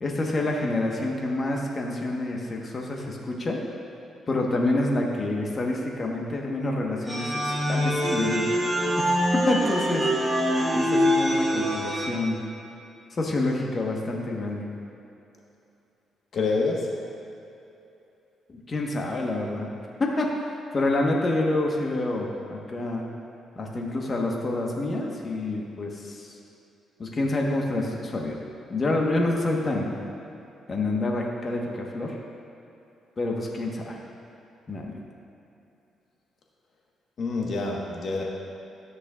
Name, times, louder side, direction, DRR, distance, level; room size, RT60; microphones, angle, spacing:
voice 1, 0.0-3.6 4.3-8.4 9.0-9.1 9.5-10.1 10.7-12.4 13.1-14.7 18.5-19.7 20.0-20.3 20.7-23.0 23.6-26.3 27.0-28.4 28.7-29.9 30.7-32.2 33.2-34.0 34.7-34.9, left 2 dB, 35° left, 0 dB, 1.2 m, -27 dB
sound 1, 7.1-12.1, equal, 20° right, 1.3 m, -24 dB
voice 2, 16.3-16.9 37.2-38.2, left 3 dB, 55° left, -1 dB, 1.3 m, -27 dB
13.5 x 6.3 x 2.4 m, 2.8 s
cardioid pair, 90°, 0 cm